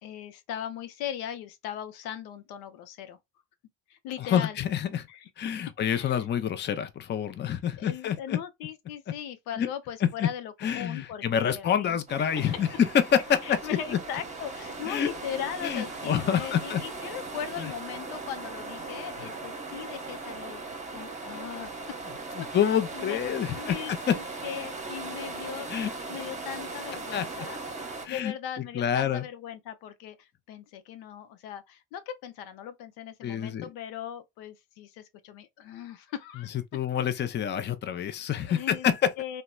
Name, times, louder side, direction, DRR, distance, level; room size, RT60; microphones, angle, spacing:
voice 1, 0.0-3.2 3.9-4.6 5.1-5.3 5.9-6.3 7.8-12.7 13.4-20.6 20.9-22.0 22.4-22.5 22.9-25.7 26.1-27.6 28.1-36.5 38.4-39.4, left 9 dB, 80° left, 0.6 m, -39 dB
voice 2, 4.2-5.1 5.4-8.4 9.6-9.7 10.0-10.3 10.6-12.7 13.5-13.6 13.9-14.0 14.9-15.1 15.6-16.8 19.2-19.3 22.4-23.7 24.1-24.2 25.7-25.9 27.1-27.2 28.0-28.3 28.7-29.3 33.2-33.6 36.7-38.9, left 9 dB, 30° left, 0.5 m, -28 dB
sound 1, 12.1-28.1, right 3 dB, 20° right, 0.9 m, -38 dB
2.8 x 2.2 x 2.2 m
supercardioid pair, 85°, 37 cm